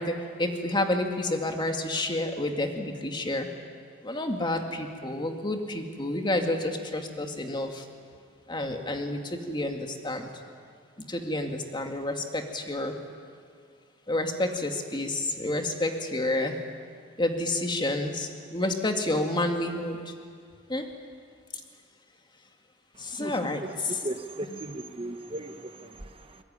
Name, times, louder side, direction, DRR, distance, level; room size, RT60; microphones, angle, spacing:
voice 1, 0.0-3.5 4.0-7.9 8.5-10.3 11.0-12.9 14.1-16.6 17.2-20.1 20.7-20.9 23.0-24.0 24.4-24.6, left 1 dB, 25° left, 4 dB, 2.2 m, -29 dB
voice 2, 24.0-26.4, right 1 dB, 30° right, 7 dB, 1.0 m, -37 dB
22.5 x 21.5 x 9.9 m, 2.1 s
head